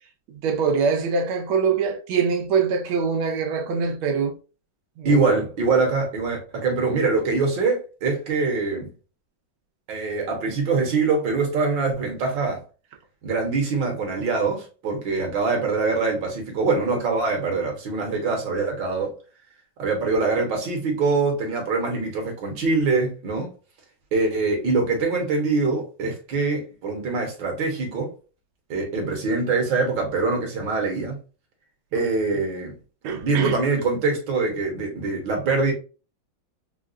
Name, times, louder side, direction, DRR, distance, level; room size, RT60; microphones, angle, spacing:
voice 1, 0.3-4.4 5.0-5.2 31.9-32.0 33.0-33.6, right 5 dB, 90° right, 1.6 m, -24 dB
voice 2, 5.1-8.9 9.9-12.6 13.2-19.1 19.8-23.5 24.1-28.1 28.7-31.2 31.9-32.8 33.1-35.7, right 4 dB, 65° right, 1.8 m, -24 dB
4.7 x 2.3 x 2.5 m
omnidirectional pair, 2.2 m